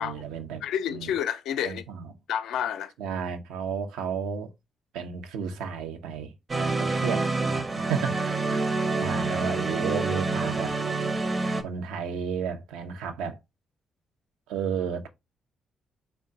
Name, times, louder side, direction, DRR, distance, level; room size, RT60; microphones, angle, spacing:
voice 1, 0.0-1.1 1.6-2.1 3.0-4.5 4.9-8.7 9.0-10.7 11.6-13.4 14.5-15.1, right 7 dB, 80° right, 0.5 m, -33 dB
voice 2, 0.6-1.8 2.3-2.9, left 9 dB, 70° left, 0.3 m, -29 dB
sound 1, 6.5-11.6, right 3 dB, 40° right, 0.6 m, -27 dB
3.7 x 2.1 x 3.8 m
hypercardioid pair, 45°, 0 cm